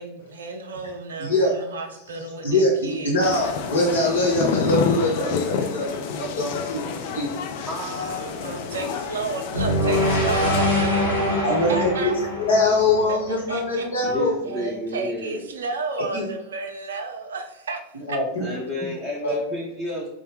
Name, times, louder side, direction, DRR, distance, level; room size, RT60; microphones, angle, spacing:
voice 1, 0.0-3.3 7.8-12.2 13.1-13.9 14.4-17.8 18.1-18.2, right 3 dB, 65° right, 5 dB, 0.4 m, -33 dB
voice 2, 1.2-1.6 2.4-7.4 11.4-11.9 12.5-14.7 16.1-16.2 18.1-18.4 19.2-19.4, left 2 dB, 70° left, -3 dB, 1.1 m, -23 dB
sound 1, 3.2-10.6, left 6 dB, 50° left, 0.4 m, -29 dB
voice 3, 7.7-8.2 14.0-15.4 18.4-20.1, left 1 dB, 5° right, -6 dB, 0.6 m, -31 dB
sound 2, 9.5-13.8, left 1 dB, 90° left, 0.9 m, -24 dB
3.6 x 2.1 x 3.3 m, 0.89 s
figure-of-eight pair, 90°, 0 cm